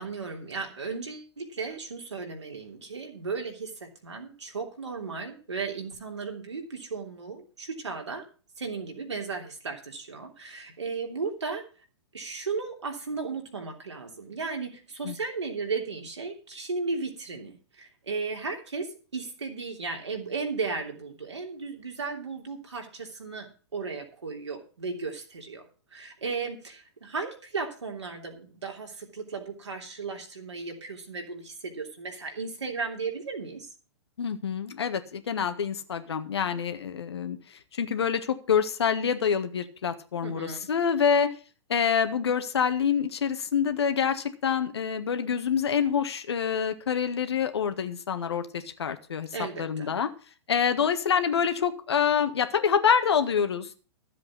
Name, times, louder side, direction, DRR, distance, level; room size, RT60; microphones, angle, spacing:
voice 1, 0.0-8.2 8.6-11.6 12.1-25.6 25.9-33.7 40.2-40.6 49.3-49.9, right 4 dB, 75° right, 2 dB, 3.2 m, -35 dB
voice 2, 34.2-37.4 37.7-41.3 41.7-49.3 49.6-50.1 50.5-53.7, left 7 dB, 65° left, 9 dB, 1.6 m, -26 dB
13.5 x 7.6 x 6.0 m, 0.37 s
figure-of-eight pair, 110°, 15 cm